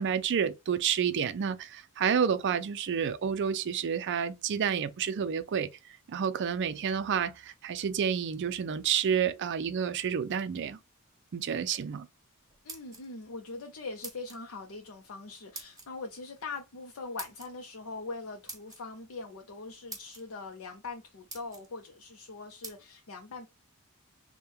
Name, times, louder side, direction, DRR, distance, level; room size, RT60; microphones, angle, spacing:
voice 1, 0.0-5.8 6.1-10.8 11.3-12.1, right 7 dB, 55° right, 0.4 m, -29 dB
sound 1, 12.5-13.3 14.0-14.4 15.5-15.9 17.2-17.5 18.5-18.8 19.5-19.6 19.9-20.2 20.8-20.9 21.3-21.7 22.6-22.8, right 3 dB, 15° right, 1.3 m, -44 dB
voice 2, 12.6-23.5, left 3 dB, 65° left, 0.6 m, -42 dB
3.4 x 2.2 x 4.3 m
head